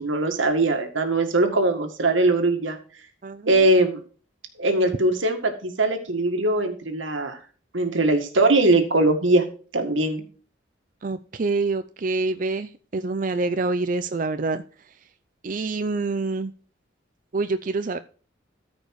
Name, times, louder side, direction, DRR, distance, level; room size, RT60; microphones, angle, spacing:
voice 1, 0.0-2.8 3.5-4.0 4.6-7.4 7.7-9.4 9.7-10.2, right 2 dB, 90° right, 6 dB, 1.9 m, -21 dB
voice 2, 3.2-3.7 11.0-14.6 15.4-16.5 17.3-18.0, right 3 dB, 45° right, 10 dB, 0.5 m, -26 dB
13.5 x 5.2 x 4.8 m, 0.39 s
head